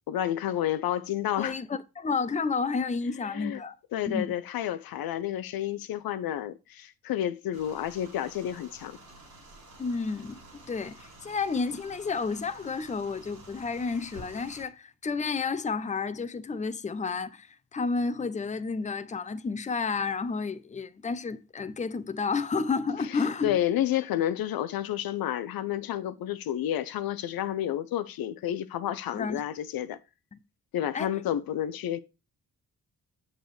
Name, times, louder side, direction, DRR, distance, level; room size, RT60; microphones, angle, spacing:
voice 1, 0.1-1.6 3.2-3.6 3.9-9.0 23.1-30.0 30.7-32.0, left 11 dB, 65° left, 0.6 m, -30 dB
voice 2, 1.4-3.7 4.1-4.3 9.8-10.4 10.7-23.6 29.1-29.4 30.3-30.4 30.9-31.1, left 4 dB, 20° left, 0.6 m, -31 dB
sound 1, 7.5-14.7, right 2 dB, 90° right, 2.9 m, -50 dB
7.5 x 7.1 x 3.2 m
hypercardioid pair, 40°, 38 cm